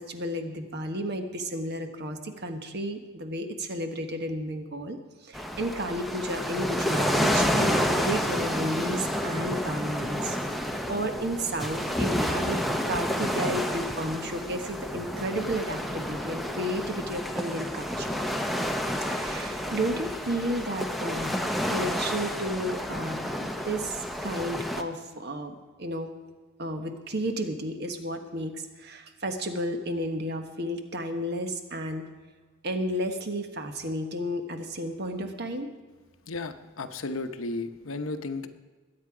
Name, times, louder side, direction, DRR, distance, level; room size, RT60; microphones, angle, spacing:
voice 1, 0.0-12.6 12.8-18.6 19.1-21.4 21.7-26.1 26.6-32.0 32.6-35.7, right 1 dB, 50° right, 6 dB, 1.3 m, -32 dB
sound 1, 5.3-24.8, equal, ahead, 0.7 m, -30 dB
voice 2, 36.3-38.5, left 3 dB, 75° left, 9 dB, 0.9 m, -34 dB
21.0 x 8.9 x 4.9 m, 1.4 s
head